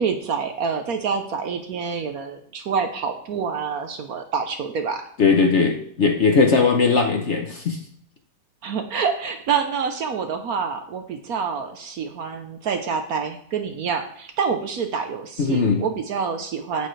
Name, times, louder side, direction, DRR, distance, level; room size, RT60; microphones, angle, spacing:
voice 1, 0.0-5.0 8.6-16.9, right 6 dB, 60° right, 7 dB, 1.1 m, -27 dB
voice 2, 5.2-7.8 15.4-15.8, left 4 dB, 50° left, 3 dB, 1.0 m, -19 dB
9.1 x 8.4 x 3.2 m, 0.63 s
omnidirectional pair, 1.9 m